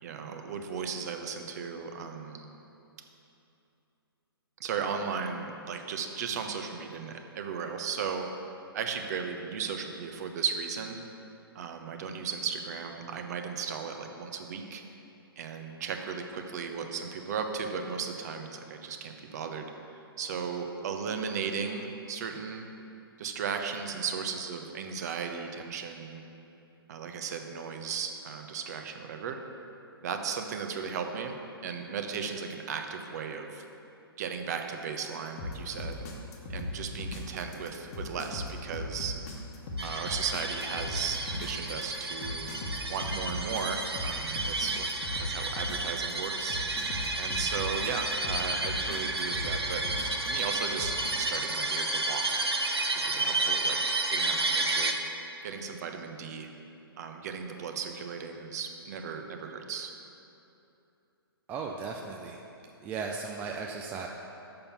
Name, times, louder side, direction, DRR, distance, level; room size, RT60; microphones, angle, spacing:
voice 1, 0.0-2.5 4.6-8.3 8.7-11.0 11.5-14.8 15.4-19.7 20.2-22.7 23.2-26.2 26.9-29.4 30.0-33.6 34.2-36.0 36.5-39.2 39.8-42.5 42.9-44.9 45.2-46.6 47.2-49.9 50.2-52.5 52.9-54.9 55.4-56.5 57.0-59.9, right 6 dB, 40° right, 5 dB, 0.7 m, -36 dB
sound 1, 35.4-51.1, left 2 dB, 40° left, 1.1 m, -37 dB
sound 2, 39.8-54.9, right 2 dB, 80° right, 0.8 m, -31 dB
voice 2, 61.5-62.4 62.8-64.1, right 5 dB, 15° right, 1 dB, 0.3 m, -36 dB
6.8 x 5.7 x 6.9 m, 2.8 s
figure-of-eight pair, 125°, 13 cm